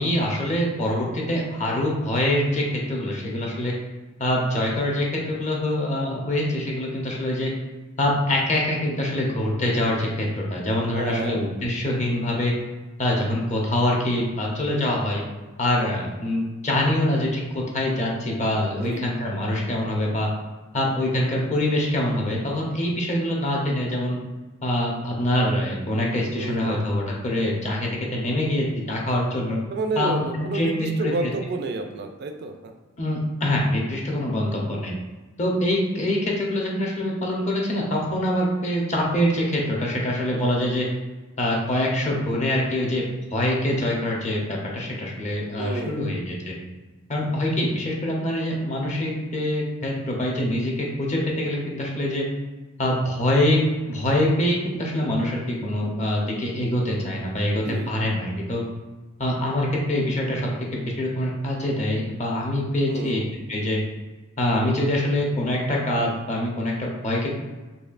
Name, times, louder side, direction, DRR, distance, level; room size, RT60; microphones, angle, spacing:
voice 1, 0.0-3.7 4.2-7.5 8.0-12.5 13.0-15.2 15.6-20.3 20.7-24.2 24.6-29.6 30.0-30.1 30.4-31.3 33.0-34.9 35.4-40.9 41.4-43.0 43.3-46.6 47.1-52.3 52.8-58.6 59.2-63.2 63.5-63.8 64.4-67.3, left 1 dB, 35° left, -2 dB, 0.7 m, -24 dB
voice 2, 10.9-11.5 18.8-19.0 26.3-26.8 29.7-32.7 45.6-46.2 57.6-58.0 62.9-63.3, right 3 dB, 55° right, 5 dB, 0.3 m, -30 dB
4.1 x 3.2 x 2.4 m, 1.2 s
head